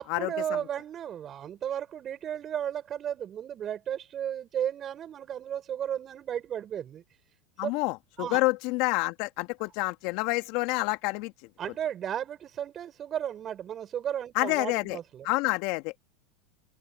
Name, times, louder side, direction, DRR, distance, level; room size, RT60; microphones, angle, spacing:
voice 1, 0.0-7.0 7.6-7.7 8.2-8.4 11.6-15.3, right 10 dB, 35° right, 5.2 m, -34 dB
voice 2, 7.6-11.3 14.3-15.0 15.2-15.9, left 24 dB, 60° left, 1.6 m, -28 dB
hypercardioid pair, 90°, 0 cm